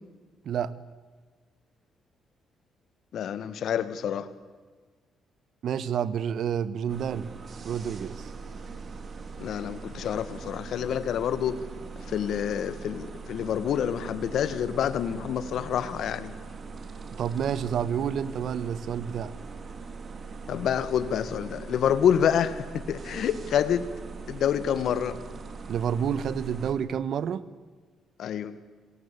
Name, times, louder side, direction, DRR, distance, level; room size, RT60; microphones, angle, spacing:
voice 1, 3.1-4.3 9.4-11.6 12.0-16.3 20.5-23.9 24.3-25.2 28.2-28.6, left 9 dB, 70° left, 14 dB, 1.6 m, -27 dB
voice 2, 5.6-7.3 7.6-8.2 17.1-19.3 25.7-27.4, right 8 dB, 65° right, 17 dB, 1.1 m, -29 dB
sound 1, 6.9-26.7, right 4 dB, 45° right, 3.2 m, -41 dB
27.0 x 22.0 x 8.4 m, 1.4 s
cardioid pair, 90°, 0 cm